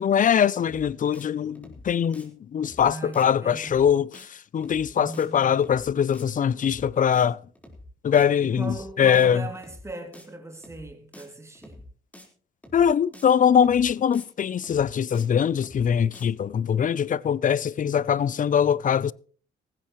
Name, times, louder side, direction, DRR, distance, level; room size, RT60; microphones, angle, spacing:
voice 1, 0.0-4.3 4.5-7.4 8.0-9.4 12.7-19.1, left 8 dB, 40° left, 0.6 m, -22 dB
sound 1, 0.6-0.9 1.1-1.3 1.5-1.9 2.1-2.3 2.6-2.9 3.1-3.3 3.5-3.9 4.1-4.3 4.6-4.9 5.1-5.3 5.5-5.9 6.1-6.3 6.6-6.9 7.1-7.3 7.5-7.9 8.1-8.3 8.6-8.9 9.1-9.3 9.5-9.9 10.1-10.3 10.6-10.9 11.1-11.3 11.5-11.9 12.1-12.3 12.6-12.9 13.1-13.3 13.5-13.9 14.1-14.3 14.6-14.9 15.1-15.3 15.5-15.9 16.1-16.3, left 1 dB, 5° left, 4.4 m, -47 dB
voice 2, 2.8-3.8 5.0-5.6 8.4-11.8, right 2 dB, 15° right, 2.7 m, -39 dB
18.0 x 15.5 x 3.1 m
cardioid pair, 90°, 20 cm